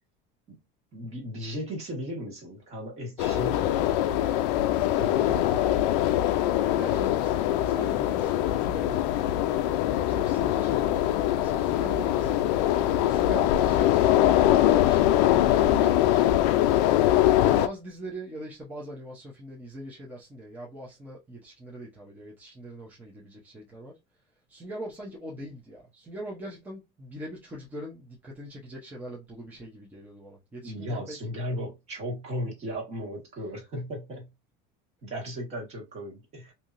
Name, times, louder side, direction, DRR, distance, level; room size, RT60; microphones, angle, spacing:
voice 1, 0.9-4.2 4.9-6.0 30.6-34.3 35.0-36.5, equal, 30° right, 1.5 m, -36 dB
sound 1, 3.2-17.7, left 13 dB, 80° left, 0.4 m, -23 dB
voice 2, 6.7-9.7 10.1-12.5 13.1-16.6 17.4-24.0 24.5-31.2, equal, 10° right, 0.8 m, -41 dB
3.3 x 2.8 x 2.6 m
cardioid pair, 165°, 21 cm